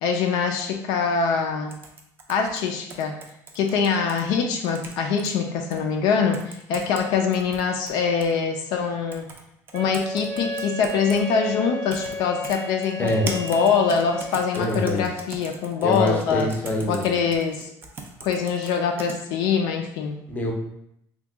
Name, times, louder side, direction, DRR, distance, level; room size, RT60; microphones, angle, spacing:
voice 1, 0.0-1.7 2.3-3.2 3.5-9.3 9.7-16.5 16.9-17.7 18.2-20.2, left 6 dB, 70° left, 3 dB, 0.4 m, -24 dB
sound 1, 1.7-4.2 4.6-5.3 5.7-5.8 6.3-7.0 7.3-8.3 9.1-9.4 9.7-11.2 11.9-12.1 12.4-19.2, right 4 dB, 30° right, 0.4 m, -39 dB
Wind instrument woodwind instrument, 9.7-14.4, left 1 dB, 75° right, 0.5 m, -33 dB
voice 2, 14.6-15.1 15.8-17.0 20.3-20.5, left 1 dB, 20° left, 1 dB, 0.5 m, -25 dB
2.8 x 2.2 x 3.4 m, 0.75 s
cardioid pair, 150°, 7 cm